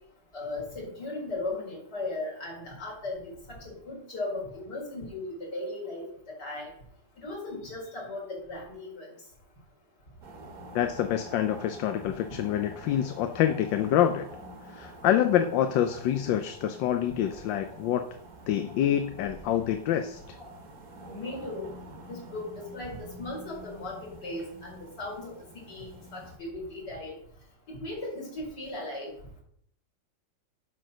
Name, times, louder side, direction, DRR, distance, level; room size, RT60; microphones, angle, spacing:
voice 1, 0.3-6.1 6.4-6.7 7.2-9.1 21.1-21.7 22.1-25.4 25.7-27.2 27.8-29.1, left 2 dB, 60° left, -3 dB, 4.2 m, -37 dB
sound 1, 10.2-26.4, right 1 dB, 50° right, 1.7 m, -47 dB
voice 2, 10.7-14.3 14.7-18.0 18.5-20.2, left 10 dB, 75° left, 8 dB, 1.3 m, -26 dB
10.5 x 4.5 x 6.2 m, 0.67 s
omnidirectional pair, 2.1 m